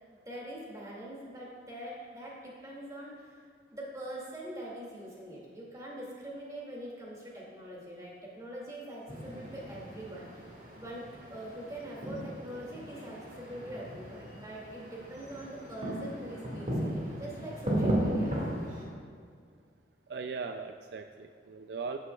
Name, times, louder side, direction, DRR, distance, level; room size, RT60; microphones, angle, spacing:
voice 1, 0.3-3.4 3.7-10.5 10.8-18.3, right 1 dB, 20° right, -5 dB, 2.4 m, -43 dB
sound 1, 9.1-18.8, right 1 dB, 45° right, 2.1 m, -36 dB
voice 2, 20.1-22.0, right 5 dB, 65° right, 6 dB, 0.4 m, -39 dB
12.5 x 9.8 x 2.4 m, 2.1 s
head